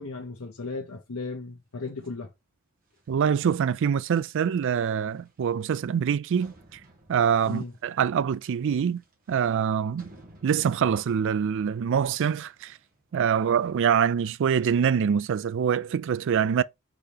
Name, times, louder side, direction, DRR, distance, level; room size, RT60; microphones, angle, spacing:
voice 1, 0.0-2.3 7.4-7.7, left 3 dB, 75° left, 0.9 m, -36 dB
sound 1, 1.9-15.1, right 1 dB, 40° right, 1.4 m, -57 dB
voice 2, 3.1-6.5 7.1-9.0 9.3-10.1 10.4-12.8 13.1-16.6, right 7 dB, 60° right, 0.3 m, -24 dB
4.2 x 3.9 x 3.3 m
head